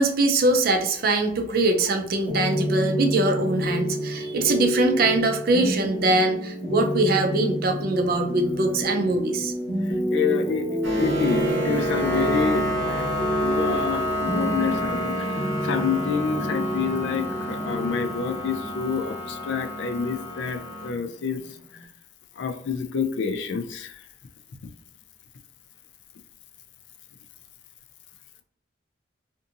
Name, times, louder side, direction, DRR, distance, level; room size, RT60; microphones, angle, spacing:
voice 1, 0.0-9.5, right 2 dB, 50° right, 5 dB, 0.4 m, -22 dB
sound 1, 2.3-21.8, equal, 50° left, 1.0 m, -29 dB
voice 2, 10.1-10.7 11.0-12.6 12.9-13.1 13.4-21.4 22.4-24.0, left 6 dB, 70° left, 7 dB, 0.4 m, -28 dB
sound 2, 10.8-20.9, equal, 80° right, 0.8 m, -29 dB
2.6 x 2.6 x 2.5 m, 0.68 s
head